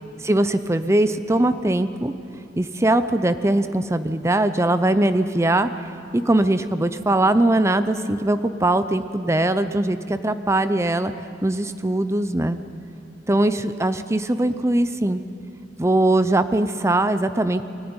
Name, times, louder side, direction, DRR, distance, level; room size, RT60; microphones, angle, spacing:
voice 1, 0.2-2.1 2.6-5.9 6.1-11.1 11.4-12.6 13.3-15.2 15.8-17.6, right 1 dB, 15° right, 11 dB, 0.6 m, -21 dB
20.5 x 15.0 x 9.7 m, 2.6 s
head